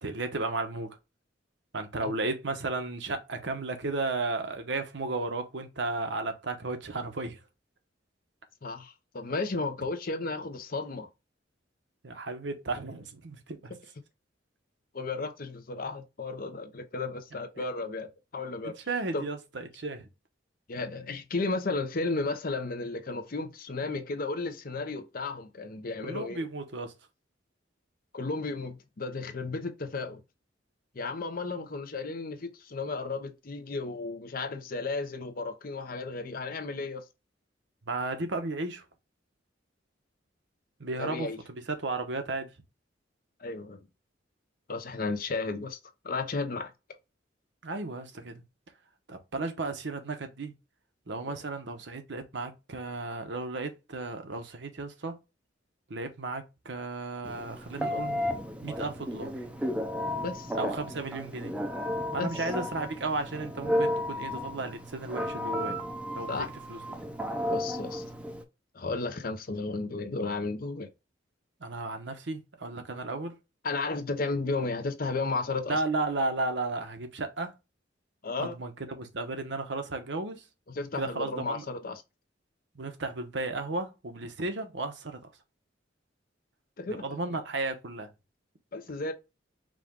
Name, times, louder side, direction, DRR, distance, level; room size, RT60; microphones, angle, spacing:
voice 1, 0.0-1.0 1.7-7.4 12.0-13.7 17.6-17.7 18.6-20.1 26.0-26.9 37.9-38.8 40.8-41.3 41.7-42.5 47.6-48.4 49.1-50.5 51.1-55.2 55.9-58.2 58.6-59.5 60.5-61.6 62.1-65.8 66.1-66.8 71.6-73.4 75.7-77.5 78.4-80.4 80.9-81.7 82.7-85.2 86.9-88.1, right 3 dB, 70° right, 0.9 m, -34 dB
voice 2, 8.6-11.1 14.9-18.8 19.1-19.2 20.7-26.4 28.1-30.2 30.9-37.0 41.0-41.4 43.4-43.9 44.7-45.8 46.0-46.7 60.2-60.5 62.2-62.3 66.3-66.5 67.5-68.0 68.7-70.9 73.6-75.8 78.2-78.6 80.7-82.0 86.8-87.4 88.7-89.1, left 3 dB, 50° left, 0.7 m, -34 dB
Telephone, 57.2-68.4, left 1 dB, 5° right, 0.6 m, -33 dB
5.0 x 2.4 x 3.6 m
head